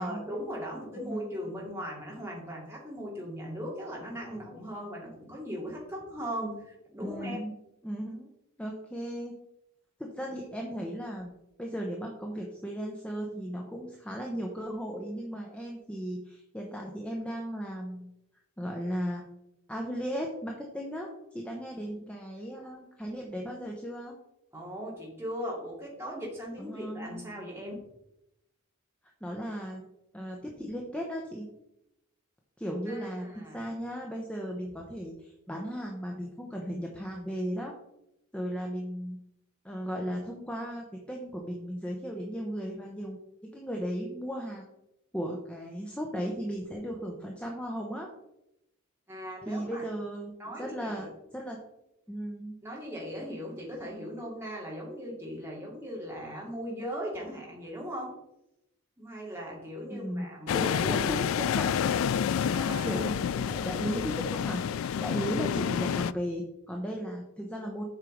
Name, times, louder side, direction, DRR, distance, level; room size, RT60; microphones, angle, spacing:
voice 1, 0.0-7.4 24.5-27.8 32.9-33.6 49.1-49.8 50.4-51.1 52.6-58.1 59.0-61.1 62.5-63.0, equal, 10° right, -4 dB, 2.6 m, -38 dB
voice 2, 0.9-1.4 7.0-7.5 7.8-8.3 8.6-9.3 10.0-11.3 11.6-18.1 18.6-19.2 19.7-24.2 26.6-27.2 29.2-29.8 30.1-31.5 32.6-33.3 33.5-37.7 38.3-39.2 39.6-44.7 45.1-48.1 49.5-51.6 52.1-52.6 59.9-61.7 62.8-67.8, equal, 5° left, 0 dB, 0.9 m, -36 dB
sound 1, 60.5-66.1, left 8 dB, 70° left, 0.3 m, -29 dB
7.8 x 5.6 x 5.1 m, 0.85 s
head